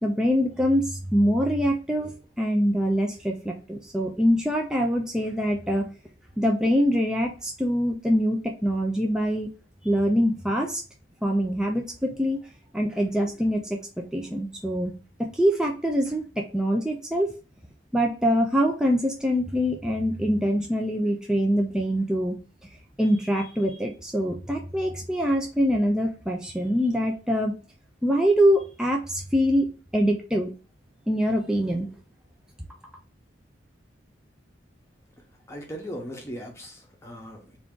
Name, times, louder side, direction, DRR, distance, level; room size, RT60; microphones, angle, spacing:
voice 1, 0.0-5.9 6.4-9.5 9.8-10.8 11.2-12.4 12.7-13.6 14.1-14.9 15.2-17.3 17.9-22.3 23.0-27.5 28.0-29.7 29.9-30.5 31.1-31.9, equal, 5° right, 1 dB, 0.3 m, -24 dB
voice 2, 35.5-37.6, equal, 15° left, 0 dB, 0.8 m, -38 dB
3.5 x 2.5 x 3.6 m, 0.36 s
head